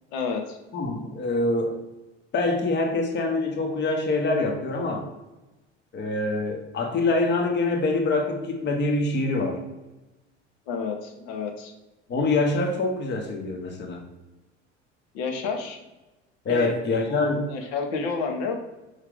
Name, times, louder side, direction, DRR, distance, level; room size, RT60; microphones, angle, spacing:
voice 1, 0.1-0.6 10.7-11.7 15.1-15.8 16.5-16.7 17.1-18.5, left 5 dB, 60° left, 3 dB, 0.9 m, -30 dB
voice 2, 0.7-1.8 2.3-5.1 5.9-9.6 12.1-14.0 16.4-17.5, left 2 dB, 30° left, 3 dB, 0.9 m, -25 dB
4.9 x 2.8 x 3.6 m, 1.1 s
figure-of-eight pair, 65°, 35 cm